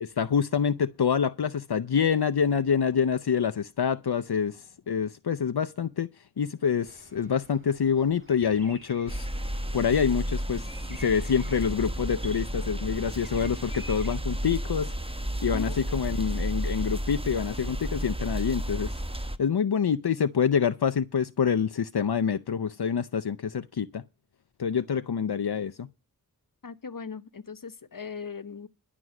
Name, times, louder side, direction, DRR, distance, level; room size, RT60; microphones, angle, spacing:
voice 1, 0.0-6.1 6.4-9.3 9.7-14.9 15.4-18.9 19.4-24.0 24.6-25.9, left 7 dB, 80° left, 0.6 m, -26 dB
Bird vocalization bird call bird song, 6.8-14.2, equal, 35° right, 2.7 m, -51 dB
sound 1, 9.1-19.4, equal, 15° right, 1.1 m, -32 dB
voice 2, 15.4-15.8 26.6-28.7, left 5 dB, 60° left, 1.0 m, -39 dB
11.0 x 6.1 x 9.0 m
wide cardioid pair, 45°, 38 cm